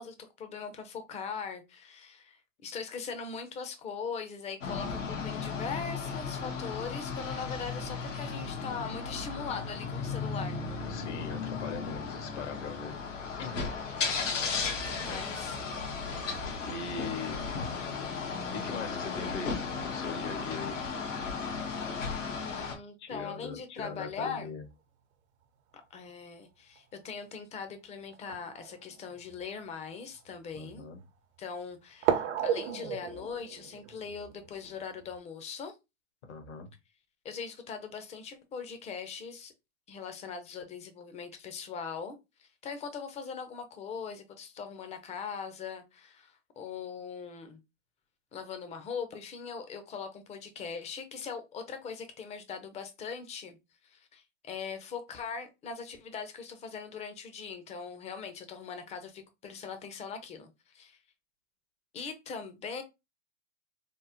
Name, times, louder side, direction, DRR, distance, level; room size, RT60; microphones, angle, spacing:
voice 1, 0.0-10.8 14.8-15.6 22.4-24.5 25.9-30.8 31.4-35.7 37.2-39.5 39.9-47.6 48.3-53.6 53.8-61.0 61.9-62.8, left 6 dB, 20° left, 0.5 m, -41 dB
sound 1, 4.6-22.7, left 5 dB, 90° left, 1.1 m, -35 dB
voice 2, 10.9-12.9 13.4-13.7 15.0-15.2 16.6-17.7 18.5-20.8 23.0-24.6 30.5-31.0 36.3-36.7, left 4 dB, 70° left, 1.1 m, -41 dB
sound 2, 26.8-26.9 28.1-29.4 30.2-30.3 32.0-35.2, right 9 dB, 65° right, 0.7 m, -34 dB
3.5 x 2.0 x 2.8 m
hypercardioid pair, 115°, 36 cm